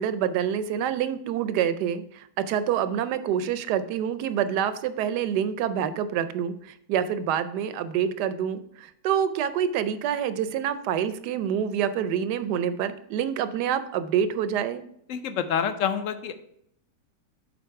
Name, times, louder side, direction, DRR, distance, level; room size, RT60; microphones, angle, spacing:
voice 1, 0.0-14.8, right 9 dB, 90° right, 12 dB, 1.2 m, -27 dB
voice 2, 15.1-16.3, left 8 dB, 65° left, 10 dB, 0.9 m, -27 dB
7.7 x 4.1 x 4.6 m, 0.71 s
omnidirectional pair, 1.7 m